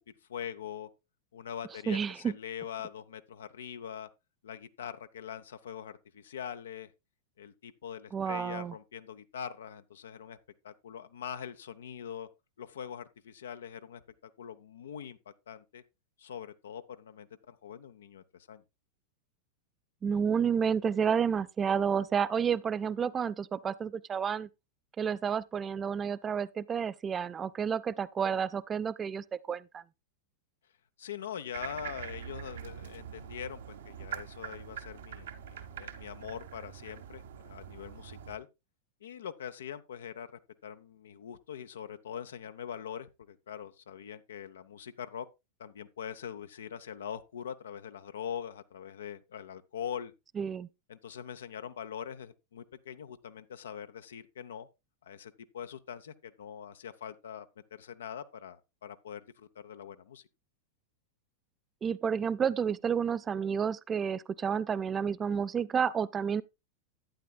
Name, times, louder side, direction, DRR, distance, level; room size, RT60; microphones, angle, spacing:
voice 1, 0.3-0.9 1.3-4.1 4.4-6.9 7.4-10.4 10.6-12.3 12.6-15.2 15.5-15.8 16.2-18.6 31.0-38.5 39.0-40.3 40.6-45.3 45.6-50.1 50.9-54.7 55.0-60.2, left 8 dB, 65° left, 0.6 m, -43 dB
voice 2, 1.9-2.3 8.1-8.7 20.0-24.5 25.0-29.8 50.4-50.7 61.8-66.4, right 7 dB, 20° right, 0.4 m, -30 dB
sound 1, 31.5-38.4, right 9 dB, 60° right, 0.9 m, -44 dB
11.5 x 9.2 x 2.2 m
figure-of-eight pair, 90°, 0 cm